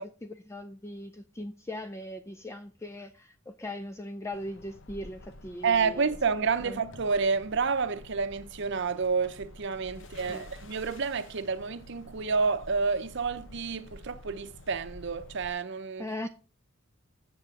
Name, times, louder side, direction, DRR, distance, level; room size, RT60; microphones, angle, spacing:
voice 1, 0.0-6.1 6.7-6.8 10.3-10.5 16.0-16.3, left 1 dB, 15° left, 0.4 m, -39 dB
sound 1, 4.3-15.5, left 1 dB, 65° left, 0.9 m, -49 dB
voice 2, 5.6-16.0, right 5 dB, 60° right, 0.7 m, -29 dB
7.8 x 7.1 x 4.8 m
head